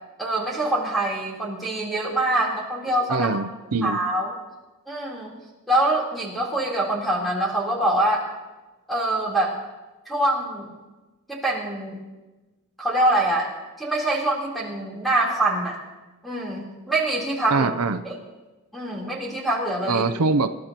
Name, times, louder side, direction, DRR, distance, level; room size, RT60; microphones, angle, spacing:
voice 1, 0.2-3.3 3.8-4.3 4.9-5.3 5.7-8.2 8.9-9.6 10.1-10.7 11.3-12.0 12.8-13.5 13.8-15.8 16.2-17.7 18.0-18.2 18.7-20.0, right 1 dB, ahead, -7 dB, 3.5 m, -24 dB
voice 2, 3.1-4.0 17.5-18.0 19.9-20.5, right 4 dB, 85° right, 11 dB, 0.6 m, -23 dB
27.0 x 13.0 x 3.0 m, 1.2 s
head